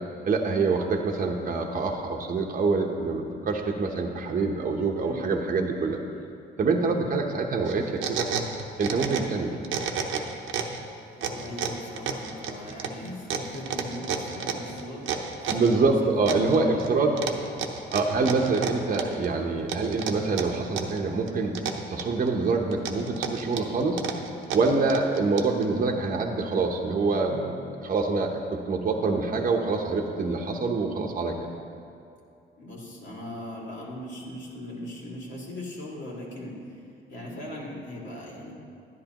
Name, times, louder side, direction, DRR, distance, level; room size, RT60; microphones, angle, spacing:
voice 1, 0.2-6.0 6.6-8.3 8.8-9.6 15.5-17.1 17.9-21.6 21.9-24.0 24.5-31.3, right 4 dB, 45° right, 2 dB, 0.9 m, -25 dB
sound 1, 7.7-9.4 9.6-10.8 11.2-15.8 16.3-16.9 17.2-19.3 19.7-21.0 21.3-22.3 22.7-25.6, right 7 dB, 80° right, 0.9 m, -31 dB
voice 2, 11.1-15.1 15.4-17.4 18.1-18.3 19.3-19.5 32.6-36.8 37.1-38.5, left 1 dB, 65° left, -4 dB, 2.4 m, -39 dB
11.0 x 10.5 x 3.0 m, 2.5 s
cardioid pair, 90°, 20 cm